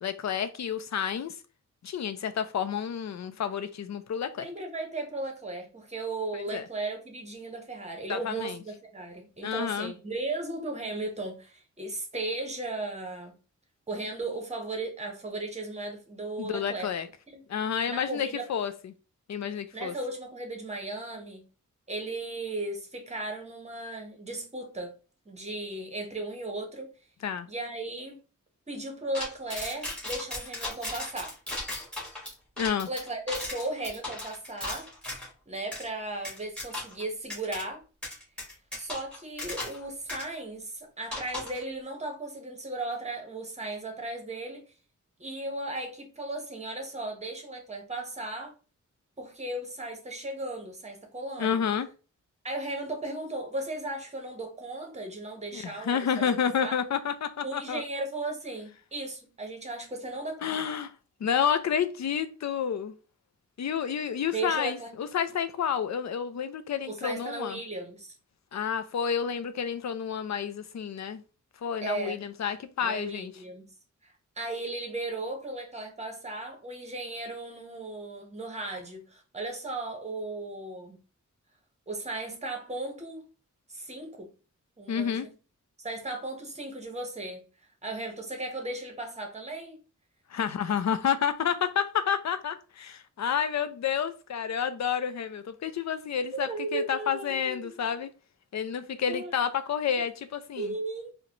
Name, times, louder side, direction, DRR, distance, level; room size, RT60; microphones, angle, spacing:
voice 1, 0.0-1.3 1.8-4.5 6.3-6.7 8.1-8.6 9.4-9.9 16.4-17.1 17.5-18.9 19.3-19.9 27.2-27.5 32.6-32.9 51.4-51.9 55.5-57.8 60.4-60.9 61.2-62.9 63.6-67.6 68.5-71.2 71.6-73.3 84.9-85.3 90.3-98.1 98.5-100.7, left 7 dB, 60° left, 0.4 m, -30 dB
voice 2, 4.4-13.3 13.9-16.9 17.3-17.4 17.9-18.4 19.7-21.5 21.9-24.9 25.3-26.9 27.5-28.2 28.7-31.4 32.9-34.9 35.5-37.8 38.8-44.6 45.2-48.5 49.2-51.6 52.4-56.3 56.6-56.8 57.4-60.5 64.3-64.9 66.8-68.1 71.8-72.2 72.8-73.7 74.0-81.0 81.9-83.2 83.7-84.3 84.8-85.3 85.8-87.5 87.8-89.8 96.3-97.9 99.1-99.3 100.6-101.1, right 2 dB, 20° right, 0.9 m, -36 dB
bullet impacts, 29.1-35.3 35.7-35.9 36.2-37.0 37.3-37.6 38.0-39.8 40.1-40.2 41.1-41.6, left 1 dB, 5° left, 1.4 m, -36 dB
3.8 x 2.1 x 2.9 m
wide cardioid pair, 125°, 31 cm